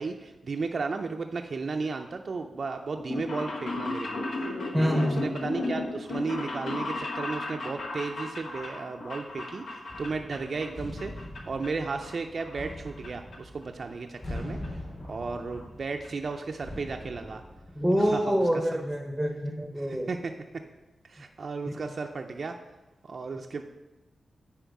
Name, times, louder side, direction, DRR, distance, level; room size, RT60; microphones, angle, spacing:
voice 1, 0.0-4.5 4.8-17.4 18.0-18.6 19.8-20.7 21.0-22.5 23.0-23.6, right 4 dB, 50° right, 4 dB, 0.4 m, -34 dB
sound 1, 3.0-10.7 11.0-11.7 12.0-13.1 13.3-13.4 14.4-14.5 14.6-14.7 15.0-15.1 15.4-15.7 16.0-16.1 16.3-16.4, left 2 dB, 85° left, 1.1 m, -35 dB
voice 2, 4.7-5.3 17.8-20.1, equal, ahead, 3 dB, 0.7 m, -26 dB
sound 2, 9.9-18.5, left 1 dB, 45° left, 1.6 m, -42 dB
9.1 x 4.3 x 4.6 m, 1.0 s
wide cardioid pair, 135°, 0 cm